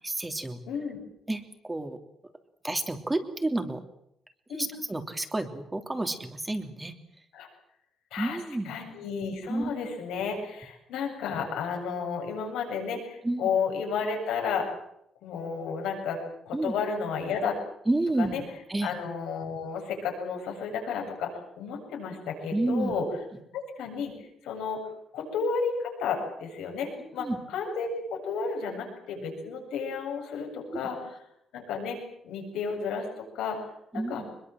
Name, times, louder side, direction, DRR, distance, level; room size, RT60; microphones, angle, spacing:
voice 1, 0.0-0.6 1.3-2.0 2.6-3.8 4.5-6.9 8.2-8.7 9.5-9.7 13.2-13.5 16.5-16.7 17.9-18.4 18.7-18.9 22.5-22.9 27.2-27.4 30.7-30.8 33.9-34.3, right 2 dB, 15° right, 6 dB, 3.1 m, -30 dB
voice 2, 0.7-1.0 4.5-4.7 7.3-7.5 8.1-8.4 8.6-14.7 15.2-17.6 18.2-18.4 18.8-23.0 23.5-24.1 24.4-24.8 25.1-31.0 31.5-32.0 32.2-33.1 33.3-33.7 33.9-34.2, left 5 dB, 90° left, 2 dB, 7.7 m, -32 dB
23.0 x 22.0 x 7.8 m, 0.78 s
cardioid pair, 90°, 0 cm